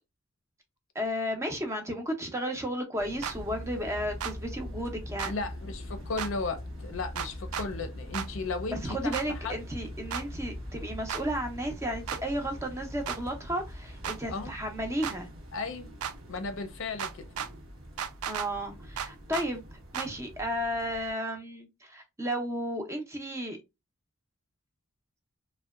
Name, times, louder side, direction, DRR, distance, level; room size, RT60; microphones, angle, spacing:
voice 1, 1.0-5.4 8.7-15.3 18.3-19.6 19.9-23.6, equal, 15° right, 0.5 m, -33 dB
sound 1, 3.0-21.1, equal, 70° right, 0.8 m, -47 dB
sound 2, 3.2-3.4 4.2-4.3 5.2-5.3 6.2-6.3 7.2-7.7 8.1-8.3 9.1-9.3 10.1-10.2 11.1-11.2 12.1-12.2 13.1-13.2 14.0-14.2 15.0-15.2 16.0-16.1 17.0-17.5 18.0-18.5 19.0-19.5 19.9-20.1, right 8 dB, 85° right, 0.4 m, -34 dB
sound 3, 3.3-16.5, left 1 dB, 20° left, 0.7 m, -43 dB
voice 2, 5.2-9.6 14.3-14.5 15.5-15.9 16.3-17.3, left 3 dB, 60° left, 0.5 m, -35 dB
2.7 x 2.2 x 2.2 m
head